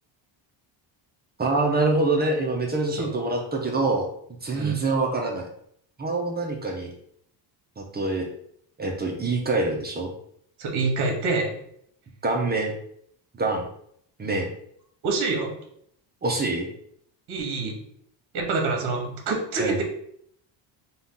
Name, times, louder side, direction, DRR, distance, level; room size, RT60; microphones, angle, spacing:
voice 1, 1.4-4.1 4.4-5.5 6.0-6.9 7.8-8.3 8.8-10.1 12.2-12.7 13.4-13.7 14.2-14.5 16.2-16.7 19.6-19.8, right 2 dB, 20° right, 1 dB, 0.6 m, -25 dB
voice 2, 10.6-11.6 15.0-15.5 17.3-17.8 18.3-19.8, right 3 dB, 55° right, 2 dB, 1.1 m, -26 dB
4.0 x 2.4 x 3.7 m, 0.68 s
cardioid pair, 130°, 46 cm